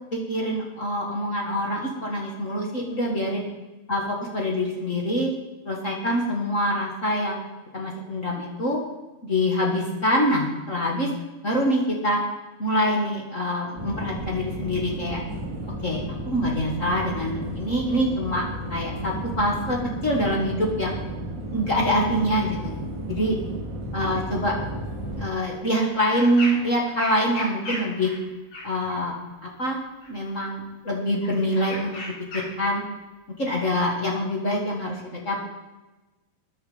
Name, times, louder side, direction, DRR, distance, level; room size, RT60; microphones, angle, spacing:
voice 1, 0.1-3.4 3.9-5.3 5.6-7.5 7.7-8.8 9.2-11.1 11.4-12.2 12.6-15.2 15.8-18.4 18.7-20.9 21.5-22.7 23.1-23.3 23.9-24.5 25.2-28.1 28.6-29.2 29.6-29.8 30.1-32.0 32.3-32.8 33.4-35.0 35.2-35.4, equal, 35° left, -1 dB, 1.2 m, -25 dB
sound 1, 13.7-25.3, right 1 dB, 30° right, 2.7 m, -33 dB
sound 2, 25.8-26.7 27.0-29.0 30.0-30.5 31.2-32.7 33.7-33.8, left 1 dB, 55° left, 6.7 m, -36 dB
14.5 x 10.0 x 5.4 m, 1.1 s
omnidirectional pair, 4.7 m